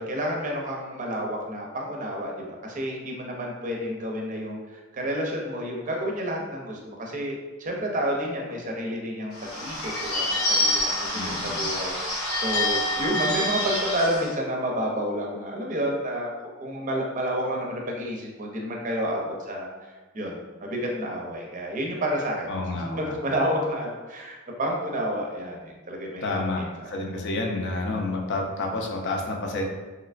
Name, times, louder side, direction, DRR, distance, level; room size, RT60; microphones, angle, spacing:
voice 1, 0.0-16.3 16.6-26.9, equal, 40° right, 0 dB, 0.5 m, -30 dB
Bird / Bell, 9.3-14.3, left 1 dB, 85° left, 1.0 m, -27 dB
voice 2, 11.1-11.6 22.5-23.1 26.2-29.6, left 2 dB, 55° left, 1 dB, 0.5 m, -29 dB
3.2 x 2.9 x 2.4 m, 1.2 s
head